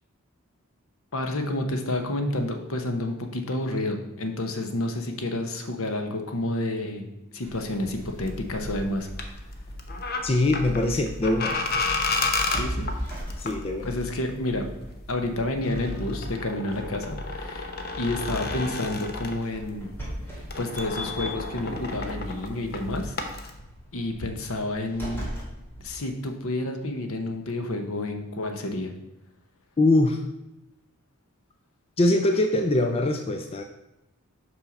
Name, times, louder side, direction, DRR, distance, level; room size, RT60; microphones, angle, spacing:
voice 1, 1.1-7.1 7.3-9.1 12.5-12.9 13.8-14.7 15.1-19.9 20.4-23.2 23.9-25.2 25.8-28.9, left 1 dB, 65° left, 5 dB, 0.9 m, -30 dB
sound 1, 7.4-25.9, equal, 10° left, 2.1 m, -41 dB
sound 2, 7.5-19.9 20.2-23.5, left 3 dB, 45° left, 0.8 m, -32 dB
voice 2, 10.2-11.6 13.4-13.9 29.8-30.2 32.0-33.6, left 2 dB, 25° left, 4 dB, 0.4 m, -23 dB
5.7 x 5.5 x 5.2 m, 0.93 s
head